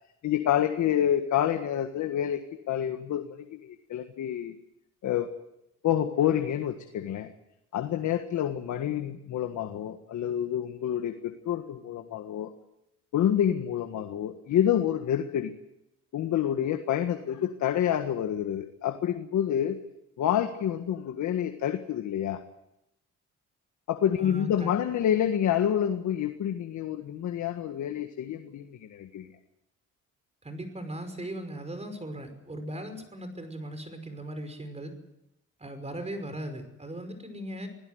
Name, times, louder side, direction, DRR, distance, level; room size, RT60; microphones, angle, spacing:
voice 1, 0.2-4.6 5.0-5.3 5.8-7.3 7.7-12.5 13.1-15.5 16.1-19.8 20.2-22.4 23.9-29.3, left 10 dB, 75° left, 6 dB, 1.7 m, -28 dB
voice 2, 24.2-24.7 30.4-34.9 35.6-37.7, right 1 dB, 20° right, 8 dB, 5.6 m, -38 dB
25.5 x 17.0 x 8.1 m, 0.84 s
cardioid pair, 90°, 30 cm